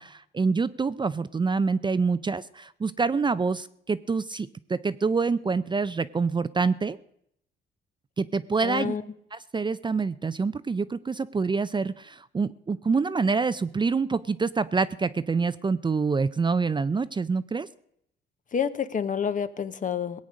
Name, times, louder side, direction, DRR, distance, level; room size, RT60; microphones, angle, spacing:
voice 1, 0.0-7.0 8.2-8.9 9.3-17.7, right 4 dB, 25° right, 15 dB, 0.5 m, -26 dB
voice 2, 8.6-9.0 18.5-20.2, left 7 dB, 40° left, 13 dB, 0.9 m, -28 dB
18.0 x 8.5 x 6.4 m, 0.72 s
cardioid pair, 90°, 20 cm